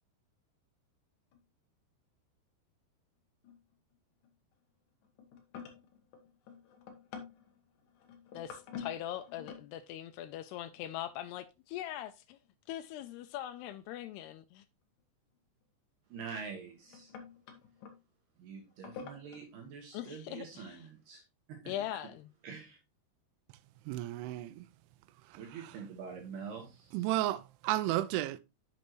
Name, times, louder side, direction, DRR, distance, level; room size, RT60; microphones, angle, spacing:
sound 1, 1.3-1.4 3.4-3.9 4.2-4.5 5.0-9.7 10.7-11.3 13.3-13.4 15.6-15.7 16.5-18.0 18.7-19.4, left 6 dB, 65° left, 2.3 m, -49 dB
voice 1, 8.3-12.4 12.7-14.6 19.9-20.8 21.7-22.3, left 12 dB, 85° left, 2.3 m, -41 dB
voice 2, 16.1-17.1 18.4-21.2 21.6-21.7 22.4-22.8 25.3-27.1, right 5 dB, 65° right, 3.3 m, -45 dB
voice 3, 23.9-24.7 26.9-28.4, right 15 dB, 90° right, 3.0 m, -32 dB
8.4 x 7.0 x 3.1 m
omnidirectional pair, 5.3 m